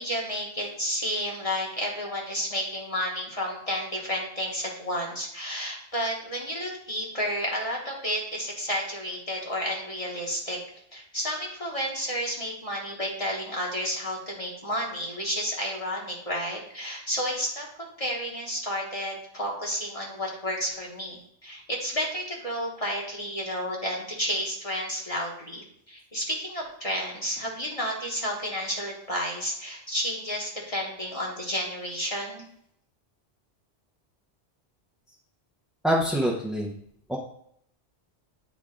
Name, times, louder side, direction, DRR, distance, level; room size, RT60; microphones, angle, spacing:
voice 1, 0.0-10.6 10.9-17.7 18.0-32.4, equal, 30° left, -2 dB, 1.3 m, -31 dB
voice 2, 35.8-36.7 37.1-37.2, equal, ahead, -3 dB, 0.6 m, -25 dB
8.2 x 3.6 x 3.7 m, 0.70 s
omnidirectional pair, 1.1 m